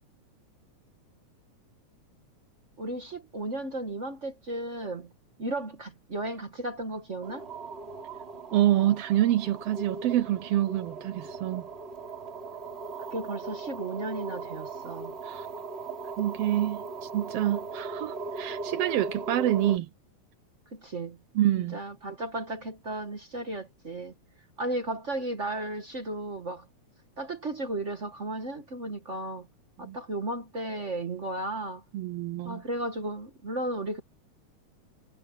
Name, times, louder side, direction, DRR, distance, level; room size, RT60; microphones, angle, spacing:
voice 1, 2.8-5.1 5.4-7.5 13.1-15.1 20.7-21.2 21.6-24.1 24.6-26.7 27.2-29.5 29.8-31.8 32.4-34.0, right 1 dB, 40° right, 1.1 m, -34 dB
sound 1, 7.2-19.8, right 4 dB, 20° right, 3.2 m, -39 dB
voice 2, 8.5-11.7 15.2-15.5 16.2-19.9 21.3-21.8 29.8-30.0 31.9-32.6, right 13 dB, 80° right, 1.4 m, -27 dB
omnidirectional pair, 3.3 m